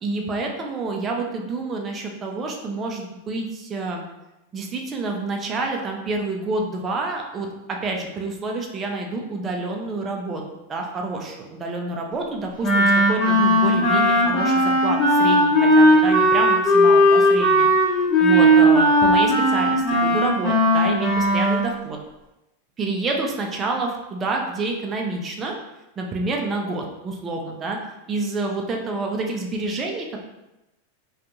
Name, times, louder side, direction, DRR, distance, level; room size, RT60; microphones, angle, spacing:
voice 1, 0.0-4.0 4.5-10.4 10.7-17.7 18.2-22.0 22.8-25.5 26.0-27.8 28.1-30.2, right 3 dB, 25° right, 1 dB, 0.5 m, -28 dB
Wind instrument woodwind instrument, 12.6-21.6, equal, 35° left, 0.9 m, -17 dB
2.4 x 2.3 x 2.9 m, 0.96 s
hypercardioid pair, 115°, 0 cm